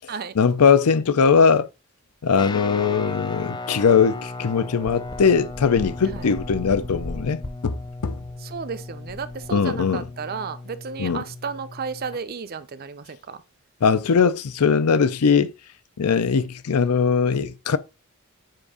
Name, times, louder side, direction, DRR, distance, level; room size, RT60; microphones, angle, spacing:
voice 1, 0.3-1.7 2.2-8.2 9.5-10.1 11.0-11.2 13.8-15.5 16.0-17.8, left 5 dB, 90° left, 0.5 m, -20 dB
Guitar, 2.4-12.2, left 3 dB, 20° left, 0.3 m, -36 dB
sound 1, 5.0-10.0, left 1 dB, 40° left, 0.8 m, -38 dB
voice 2, 8.4-13.4, right 5 dB, 45° right, 0.5 m, -33 dB
7.6 x 2.6 x 4.8 m
head